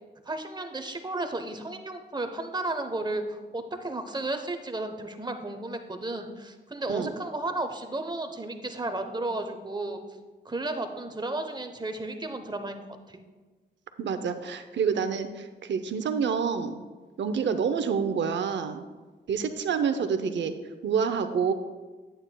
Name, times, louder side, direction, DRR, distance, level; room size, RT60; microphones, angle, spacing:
voice 1, 0.2-10.0 10.4-13.2, right 2 dB, 25° right, 6 dB, 0.9 m, -33 dB
voice 2, 14.0-16.8 17.2-18.8 19.3-20.5 20.8-21.5, right 6 dB, 75° right, 9 dB, 0.6 m, -27 dB
8.9 x 8.7 x 2.3 m, 1.3 s
cardioid pair, 65°, 19 cm